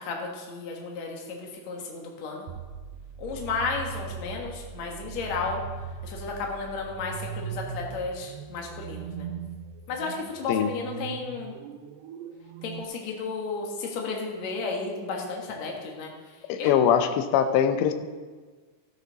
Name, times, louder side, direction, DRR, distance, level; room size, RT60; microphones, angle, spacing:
voice 1, 0.0-2.5 3.2-5.6 6.0-9.3 9.9-11.5 12.6-16.1 16.6-16.7, left 4 dB, 55° left, 0 dB, 2.3 m, -33 dB
sound 1, 2.5-12.8, right 8 dB, 85° right, 2.4 m, -39 dB
voice 2, 16.5-17.9, left 8 dB, 85° left, 8 dB, 3.0 m, -22 dB
13.0 x 10.5 x 4.1 m, 1.4 s
omnidirectional pair, 5.0 m